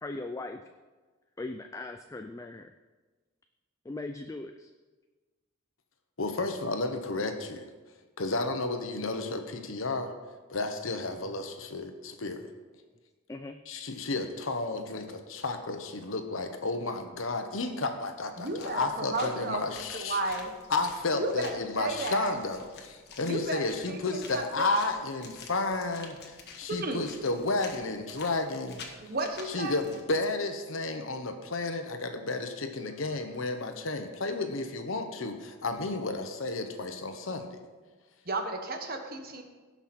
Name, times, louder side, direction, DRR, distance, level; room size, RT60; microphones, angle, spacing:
voice 1, 0.0-0.6 1.4-2.7 3.8-4.7 11.2-11.3 13.3-13.6, left 2 dB, 15° left, 6 dB, 0.3 m, -39 dB
voice 2, 6.2-7.7 8.2-10.1 10.5-12.5 13.7-20.3 20.7-28.8 29.5-37.6, left 3 dB, 75° left, 6 dB, 1.1 m, -32 dB
sound 1, 18.4-30.0, left 4 dB, 50° left, 1.4 m, -49 dB
voice 3, 18.4-20.5 21.2-22.3 23.2-24.7 26.7-27.1 29.0-29.7 32.8-32.9 38.3-39.4, right 2 dB, 45° right, 5 dB, 1.2 m, -33 dB
17.0 x 5.8 x 4.4 m, 1.3 s
head